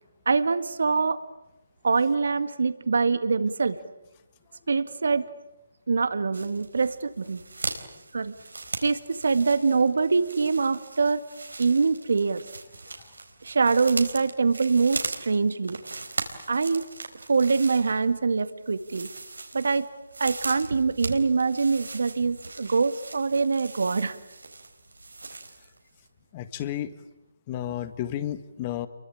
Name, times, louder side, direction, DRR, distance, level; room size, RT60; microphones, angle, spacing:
voice 1, 0.3-1.2 1.8-3.8 4.7-5.3 5.9-7.4 8.1-8.3 8.8-11.2 11.6-12.4 13.4-15.8 16.5-16.8 17.3-19.1 19.5-19.9 20.2-24.2, right 4 dB, 70° right, 12 dB, 2.0 m, -24 dB
sound 1, 6.3-25.8 26.1-26.2, right 3 dB, 90° right, 4.1 m, -39 dB
voice 2, 26.3-26.9 27.5-28.9, left 11 dB, 25° left, 13 dB, 1.7 m, -32 dB
28.5 x 23.5 x 8.8 m, 0.92 s
figure-of-eight pair, 155°, 0 cm